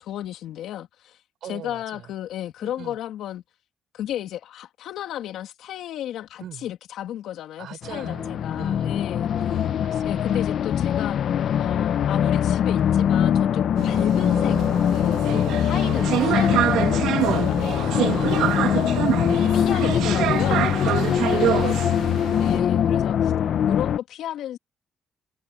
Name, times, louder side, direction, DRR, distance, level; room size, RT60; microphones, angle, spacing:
voice 1, 0.1-1.2 1.5-3.4 3.9-9.3 10.0-11.2 11.6-14.6 14.9-18.8 19.3-21.7 22.4-23.2 23.7-24.6, left 11 dB, 80° left, 3.1 m, -33 dB
voice 2, 1.4-2.1 2.6-3.0 6.4-6.7 7.6-9.0 9.4-10.4 14.2-14.9 17.8-18.6 19.4-20.1 21.2-22.1 22.5-23.8, right 11 dB, 75° right, 5.8 m, -42 dB
sound 1, 7.8-24.0, left 9 dB, 65° left, 0.9 m, -22 dB
sound 2, 13.8-22.6, right 12 dB, 90° right, 1.8 m, -26 dB
cardioid pair, 90°, 0 cm